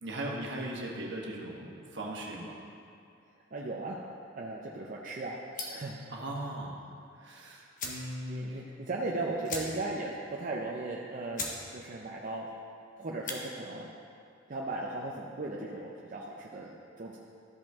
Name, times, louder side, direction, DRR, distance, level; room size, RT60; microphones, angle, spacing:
voice 1, 0.0-2.6 6.1-6.8 7.2-8.6, right 1 dB, 65° right, -2 dB, 1.3 m, -38 dB
voice 2, 3.5-4.0 4.4-5.4 5.7-6.0 8.3-11.4 11.7-12.5 13.0-13.9 14.5-17.2, right 2 dB, 45° right, -3 dB, 0.6 m, -37 dB
sound 1, 5.5-5.9 7.3-7.4 7.7-8.1 8.5-8.6 8.8-8.9 9.4-10.0 10.4-10.5 11.0-11.1 11.3-11.6 12.0-12.3 13.1-13.4, left 3 dB, 45° left, 1.0 m, -38 dB
13.5 x 5.2 x 3.6 m, 2.5 s
head